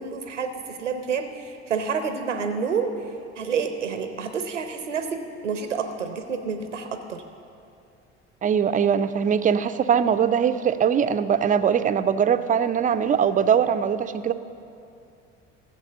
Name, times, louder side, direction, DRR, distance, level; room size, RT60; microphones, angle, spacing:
voice 1, 0.0-2.9 3.4-7.2, right 6 dB, 85° right, 8 dB, 0.7 m, -29 dB
voice 2, 8.4-14.3, right 7 dB, 25° right, 11 dB, 0.5 m, -21 dB
15.0 x 7.4 x 7.0 m, 2.6 s
figure-of-eight pair, 55°, 36 cm